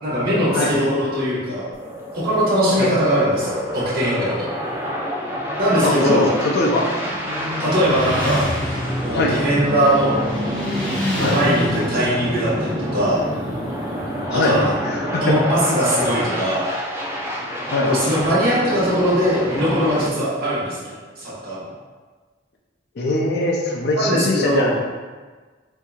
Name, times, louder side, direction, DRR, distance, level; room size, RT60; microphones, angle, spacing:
voice 1, 0.0-1.7 2.1-4.4 5.6-6.3 7.6-8.4 9.0-10.2 11.1-13.2 14.3-14.7 15.2-16.6 17.9-21.7 23.9-24.8, equal, 55° right, -8 dB, 1.2 m, -20 dB
sound 1, 1.7-20.1, equal, 15° right, 0.6 m, -28 dB
Motorcycle, 5.2-15.0, equal, 10° left, 1.3 m, -29 dB
voice 2, 5.8-6.9 9.1-9.3 11.2-11.4 14.3-14.6 14.8-15.4 17.7-17.9 23.0-24.8, left 2 dB, 60° left, 0 dB, 0.5 m, -21 dB
4.5 x 2.7 x 2.3 m, 1.4 s
head